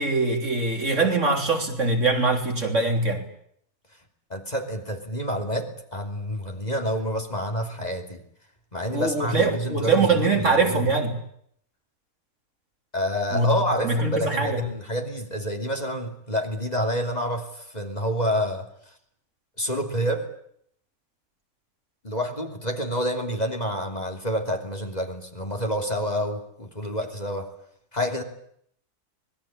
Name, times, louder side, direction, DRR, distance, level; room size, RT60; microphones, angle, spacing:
voice 1, 0.0-3.2 8.9-11.2 13.3-13.5 13.8-14.6, right 3 dB, 50° right, 3 dB, 3.8 m, -23 dB
voice 2, 4.3-8.2 8.7-10.8 12.9-18.6 19.6-20.3 22.0-27.5 27.9-28.2, equal, 25° left, 4 dB, 3.2 m, -28 dB
25.5 x 20.5 x 8.8 m, 0.67 s
omnidirectional pair, 1.6 m